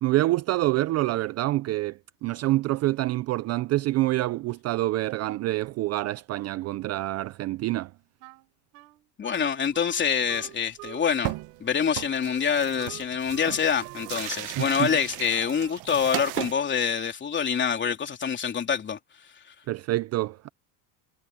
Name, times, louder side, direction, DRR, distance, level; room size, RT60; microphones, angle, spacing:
voice 1, 0.0-7.9 14.6-14.9 19.7-20.5, right 17 dB, 35° right, 0.5 m, -26 dB
Wind instrument woodwind instrument, 8.2-11.1 11.3-15.8, right 25 dB, 80° right, 4.5 m, -48 dB
voice 2, 9.2-11.3 11.6-19.0, left 7 dB, 25° left, 3.5 m, -26 dB
sound 1, 10.2-10.6 10.9-11.0 11.2-11.6 11.9-16.5, right 19 dB, 55° right, 1.1 m, -36 dB
supercardioid pair, 135°, 45 cm